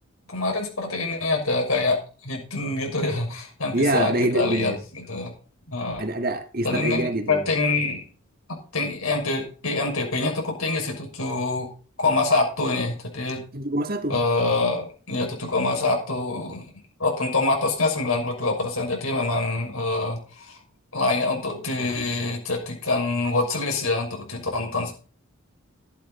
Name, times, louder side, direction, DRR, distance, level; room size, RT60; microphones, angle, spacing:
voice 1, 0.3-5.3 5.7-6.0 6.6-8.0 8.7-11.7 12.0-13.4 14.1-16.7 17.0-20.6 20.9-24.9, left 3 dB, 85° left, 6.1 m, -25 dB
voice 2, 3.7-4.8 6.0-7.5 13.5-14.2, right 1 dB, 45° right, 1.7 m, -25 dB
13.5 x 11.5 x 4.2 m
head